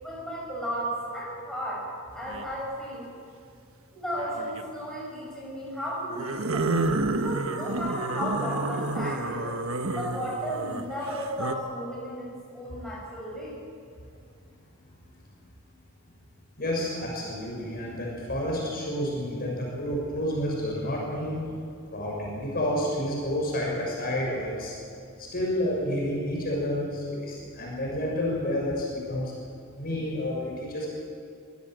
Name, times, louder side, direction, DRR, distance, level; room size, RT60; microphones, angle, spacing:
voice 1, 0.0-3.1 3.9-9.5 10.0-13.6, equal, 5° left, -5 dB, 8.0 m, -34 dB
sound 1, 2.2-2.6 4.1-4.7 6.1-11.5, right 2 dB, 70° right, 1.3 m, -30 dB
voice 2, 16.6-21.4 21.9-24.7 25.3-29.3 29.8-30.9, left 1 dB, 45° left, -3 dB, 6.5 m, -30 dB
25.0 x 16.0 x 7.8 m, 2.4 s
head